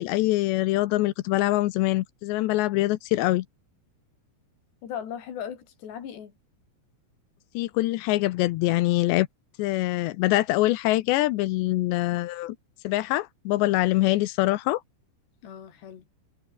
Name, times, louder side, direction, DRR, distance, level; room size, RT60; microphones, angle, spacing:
voice 1, 0.0-3.5 7.5-9.3 9.6-12.6 12.8-14.8, left 17 dB, 75° left, 2.8 m, -24 dB
voice 2, 4.8-6.3 15.4-16.1, left 9 dB, 60° left, 5.5 m, -37 dB
omnidirectional pair, 5.5 m